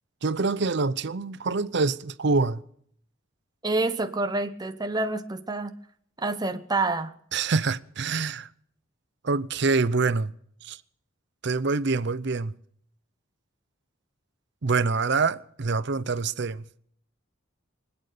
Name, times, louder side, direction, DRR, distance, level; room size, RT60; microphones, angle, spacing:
voice 1, 0.2-2.6 7.3-8.5 9.2-10.3 10.6-10.8 11.4-12.5 14.6-16.6, right 4 dB, 55° right, 0.6 m, -25 dB
voice 2, 3.6-5.7 6.2-7.1, right 2 dB, 20° right, 0.8 m, -27 dB
24.0 x 8.9 x 6.7 m
head